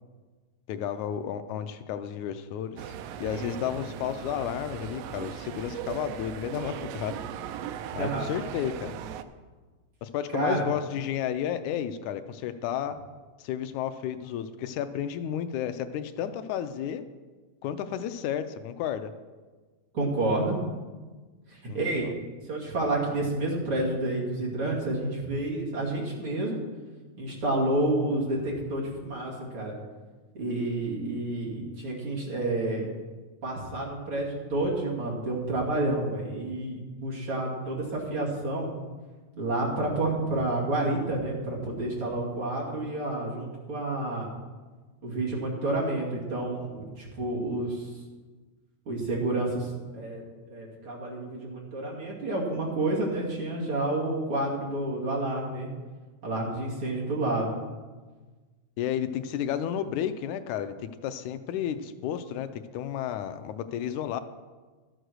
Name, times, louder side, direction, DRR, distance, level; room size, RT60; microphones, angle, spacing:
voice 1, 0.7-7.2 7.9-9.0 10.0-13.0 13.4-17.0 17.6-19.1 21.7-22.1 58.8-64.2, left 9 dB, 90° left, 10 dB, 2.0 m, -32 dB
sound 1, 2.8-9.2, right 9 dB, 80° right, 1.5 m, -38 dB
voice 2, 8.0-8.3 10.3-10.6 19.9-20.6 21.5-22.1 22.4-26.6 27.2-29.8 30.3-32.9 33.4-38.7 39.4-44.3 45.0-48.0 48.9-50.2 50.5-55.7 56.2-57.5, right 2 dB, 45° right, -4 dB, 3.1 m, -29 dB
12.5 x 7.9 x 6.4 m, 1.3 s
omnidirectional pair, 3.4 m